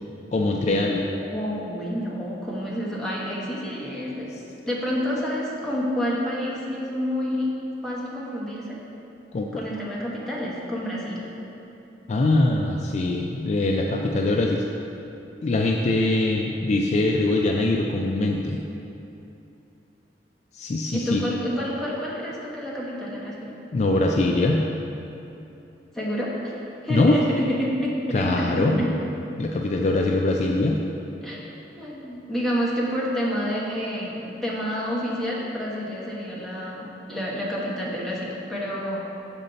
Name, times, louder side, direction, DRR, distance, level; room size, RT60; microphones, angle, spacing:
voice 1, 0.3-1.0 9.3-9.7 12.1-14.7 15.4-18.6 20.5-21.2 23.7-24.6 26.9-27.2 28.1-28.9 29.4-30.8, left 2 dB, 40° left, 1 dB, 0.3 m, -22 dB
voice 2, 1.3-4.3 4.7-7.5 7.8-8.8 9.5-11.2 20.9-23.5 25.9-26.5 26.8-28.9 31.2-31.5 31.8-39.0, equal, 5° left, -6 dB, 1.1 m, -29 dB
6.5 x 5.3 x 3.9 m, 2.9 s
head